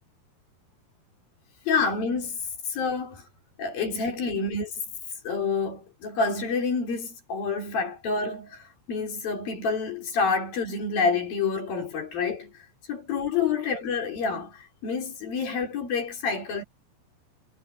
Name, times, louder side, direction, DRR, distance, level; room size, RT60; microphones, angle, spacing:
voice 1, 1.7-3.2 3.6-4.7 5.2-16.6, left 5 dB, 65° left, 6.2 m, -28 dB
omnidirectional pair, 4.5 m